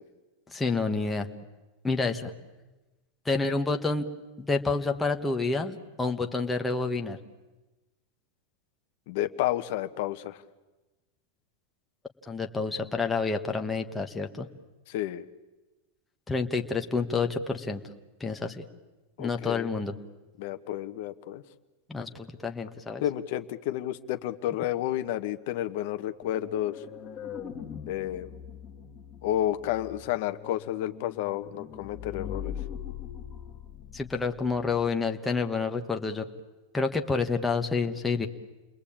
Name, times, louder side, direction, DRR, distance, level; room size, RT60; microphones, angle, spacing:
voice 1, 0.5-1.3 1.8-2.3 3.2-4.1 4.4-7.2 12.3-14.5 16.3-17.8 18.2-18.6 19.2-19.9 21.9-23.0 33.9-36.3 36.7-38.3, left 4 dB, 5° left, 3 dB, 1.2 m, -28 dB
voice 2, 9.1-10.4 14.9-15.2 19.2-19.7 20.4-21.4 23.0-26.7 27.9-28.3 29.2-32.5, left 13 dB, 55° left, 10 dB, 1.1 m, -31 dB
sound 1, 26.2-35.0, left 9 dB, 25° left, 1.9 m, -42 dB
29.0 x 21.5 x 8.7 m, 1.1 s
supercardioid pair, 165°, 0 cm